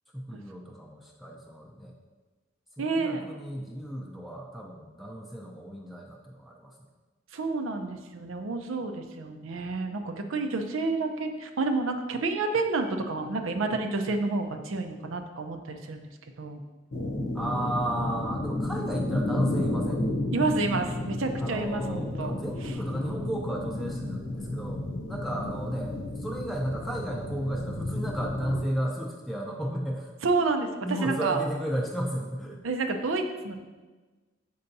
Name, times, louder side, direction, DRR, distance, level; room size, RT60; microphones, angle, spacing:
voice 1, 0.1-1.9 2.8-6.7 17.3-20.1 21.4-30.1 30.8-32.6, right 1 dB, ahead, -2 dB, 0.5 m, -34 dB
voice 2, 2.8-3.3 7.3-16.1 16.4-16.6 20.3-22.3 22.6-22.7 30.2-31.4 32.6-33.6, right 3 dB, 90° right, 5 dB, 0.6 m, -29 dB
sound 1, 16.9-28.6, left 1 dB, 75° left, 0.8 m, -32 dB
6.7 x 5.5 x 2.7 m, 1.3 s
head